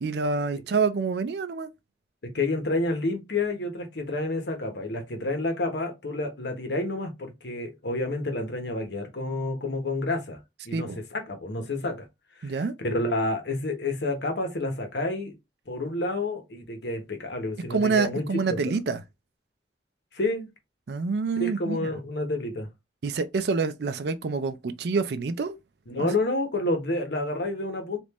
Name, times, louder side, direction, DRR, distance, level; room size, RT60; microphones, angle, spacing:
voice 1, 0.0-1.7 10.7-11.0 12.4-12.7 17.7-19.0 20.9-21.9 23.0-25.6 26.0-26.1, right 4 dB, 65° right, 0.4 m, -27 dB
voice 2, 2.2-10.4 10.6-12.1 12.4-15.4 15.7-18.7 20.1-20.5 21.4-22.7 25.9-28.0, left 2 dB, 70° left, 1.0 m, -29 dB
3.5 x 2.5 x 2.9 m
head